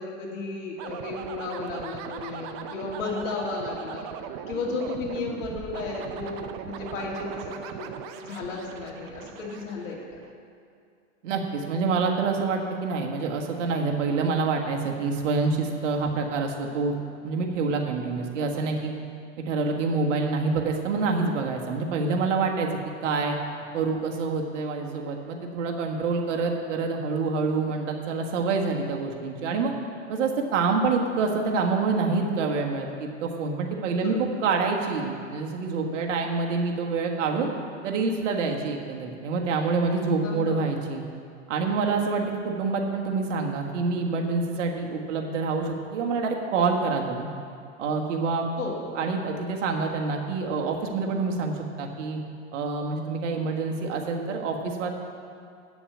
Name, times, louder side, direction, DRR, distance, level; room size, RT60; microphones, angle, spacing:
voice 1, 0.0-4.1 4.5-10.2 33.9-34.3 40.2-40.6 48.6-49.1, left 3 dB, 70° left, -2 dB, 2.8 m, -34 dB
sound 1, 0.8-10.3, right 9 dB, 35° right, 0.6 m, -39 dB
voice 2, 11.2-16.9 17.2-18.9 19.4-22.7 23.0-23.4 23.7-29.7 30.1-37.5 37.8-41.0 41.5-47.3 47.8-48.4 49.0-52.2 52.5-54.9, right 4 dB, 65° right, 1 dB, 1.6 m, -27 dB
8.6 x 7.0 x 8.6 m, 2.3 s
hypercardioid pair, 125°, 39 cm